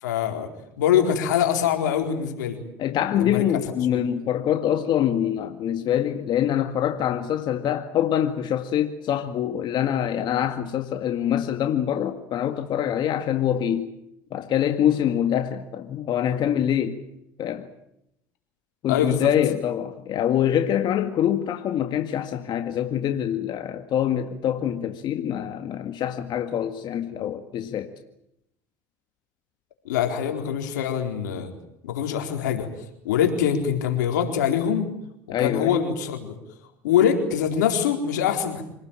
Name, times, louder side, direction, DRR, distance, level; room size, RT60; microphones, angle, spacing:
voice 1, 0.0-0.5 0.8-2.6 3.2-3.5 18.9-19.3 29.8-31.5 31.8-32.7 33.0-34.9 35.4-36.3 36.8-38.6, left 8 dB, 90° left, 4.3 m, -23 dB
voice 2, 2.8-13.9 14.3-17.0 17.4-17.7 18.8-27.9 35.3-35.7, left 10 dB, 50° left, 2.0 m, -25 dB
26.5 x 19.5 x 9.0 m
supercardioid pair, 85°, 9 cm